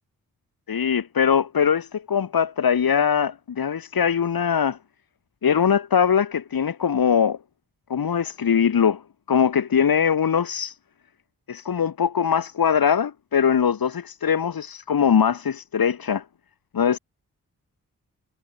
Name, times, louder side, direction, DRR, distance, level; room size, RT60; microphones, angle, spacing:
voice 1, 0.7-4.8 5.4-7.4 7.9-9.0 9.3-10.8 11.5-16.2 16.7-17.0, left 7 dB, 80° left, 5.6 m, -21 dB
supercardioid pair, 40°, 35 cm